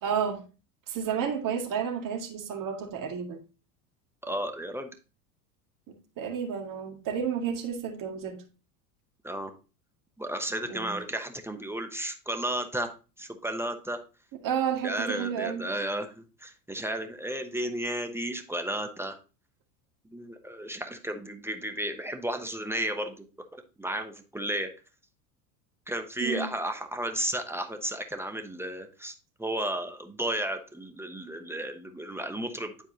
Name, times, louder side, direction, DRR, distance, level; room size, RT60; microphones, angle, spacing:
voice 1, 0.0-0.4 0.9-3.4 5.9-8.4 10.7-10.9 14.4-15.6 26.2-26.5, right 7 dB, 45° right, 1.9 m, -31 dB
voice 2, 4.2-4.9 9.2-9.5 10.2-12.9 13.2-14.0 14.8-19.2 20.1-23.3 23.5-24.7 25.9-29.1 29.4-32.7, right 1 dB, 5° right, 0.9 m, -33 dB
10.0 x 4.5 x 2.8 m
hypercardioid pair, 90°, 47 cm